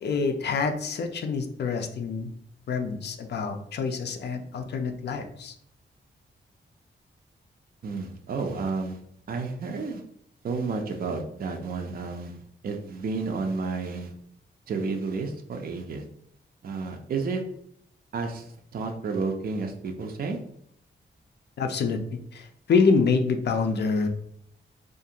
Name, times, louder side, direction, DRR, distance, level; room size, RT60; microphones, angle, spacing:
voice 1, 0.0-2.3 2.7-5.5 21.6-24.1, left 5 dB, 60° left, 5 dB, 0.4 m, -26 dB
voice 2, 7.8-9.0 9.3-10.0 10.4-12.4 12.6-14.1 14.7-16.0 16.6-17.4 18.1-18.5 18.7-20.4, right 4 dB, 50° right, 3 dB, 0.4 m, -31 dB
2.5 x 2.3 x 2.8 m, 0.70 s
wide cardioid pair, 135°, 19 cm